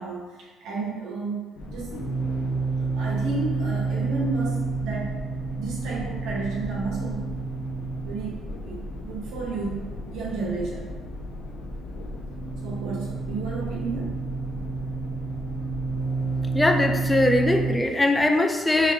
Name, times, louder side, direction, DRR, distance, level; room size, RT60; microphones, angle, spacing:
voice 1, 0.0-2.0 2.7-5.2 5.6-7.3 8.0-9.8 10.1-10.9 12.6-14.1, right 3 dB, 80° right, -4 dB, 1.4 m, -32 dB
sound 1, 1.6-17.7, right 3 dB, 85° left, 0.7 m, -30 dB
voice 2, 16.5-18.9, left 2 dB, 15° left, 5 dB, 0.4 m, -21 dB
6.2 x 3.0 x 2.4 m, 1.2 s
cardioid pair, 95°, 0 cm